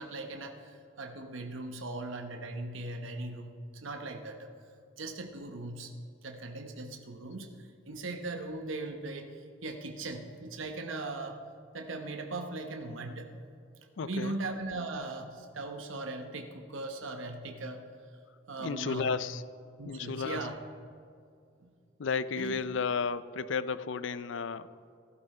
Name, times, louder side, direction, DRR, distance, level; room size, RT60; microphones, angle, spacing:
voice 1, 0.0-4.5 5.0-5.9 6.2-11.4 11.7-13.3 14.0-17.9 18.5-19.2 19.8-20.6 21.6-21.7 22.4-22.6, right 2 dB, 80° right, 5 dB, 1.0 m, -39 dB
voice 2, 14.0-14.3 18.6-19.4 19.8-20.4 22.0-24.7, left 5 dB, 70° left, 15 dB, 0.5 m, -33 dB
15.0 x 12.5 x 4.3 m, 2.4 s
head